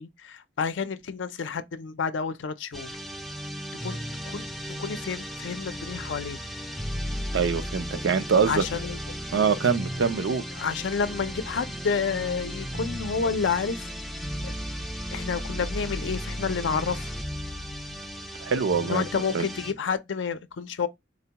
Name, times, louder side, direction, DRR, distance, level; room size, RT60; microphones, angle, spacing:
voice 1, 0.0-2.9 3.8-4.0 4.3-6.4 7.9-8.0 8.4-9.0 10.6-13.9 14.4-14.5 15.1-17.1 18.9-20.9, left 5 dB, 85° left, 0.5 m, -30 dB
sound 1, 2.7-19.7, equal, ahead, 0.3 m, -35 dB
voice 2, 7.3-8.6 9.3-10.4 18.4-19.1 19.3-19.5, right 5 dB, 85° right, 0.5 m, -24 dB
4.0 x 2.2 x 2.8 m
head